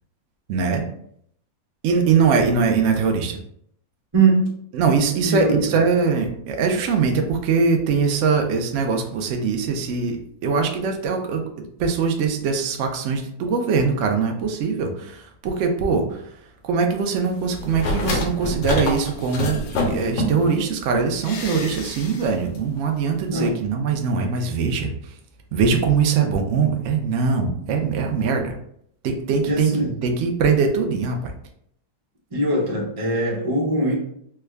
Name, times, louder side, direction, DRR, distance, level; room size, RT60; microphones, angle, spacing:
voice 1, 0.5-0.8 1.8-3.4 4.7-11.5 11.8-16.3 16.6-19.6 19.9-25.1 25.5-28.5 29.0-31.3, right 5 dB, 80° right, 3 dB, 0.6 m, -22 dB
voice 2, 4.1-4.5 5.2-5.5 23.3-23.5 29.4-29.9 32.3-33.9, right 2 dB, 30° right, -4 dB, 0.7 m, -21 dB
sound 1, 17.6-20.6 21.2-22.3 22.5-22.6, left 1 dB, 80° left, 1.3 m, -26 dB
3.5 x 2.2 x 3.3 m, 0.68 s
omnidirectional pair, 1.9 m